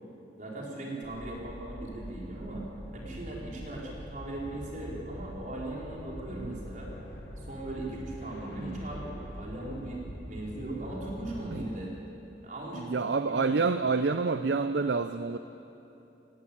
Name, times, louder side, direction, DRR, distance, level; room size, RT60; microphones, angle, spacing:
voice 1, 0.4-2.6 2.9-6.9 7.4-11.9 12.4-13.7, right 1 dB, 45° right, -3 dB, 4.6 m, -39 dB
sound 1, 1.0-11.7, equal, 75° left, 3.1 m, -44 dB
voice 2, 12.7-15.4, right 4 dB, 80° right, 10 dB, 0.6 m, -28 dB
18.0 x 17.0 x 8.7 m, 2.9 s
head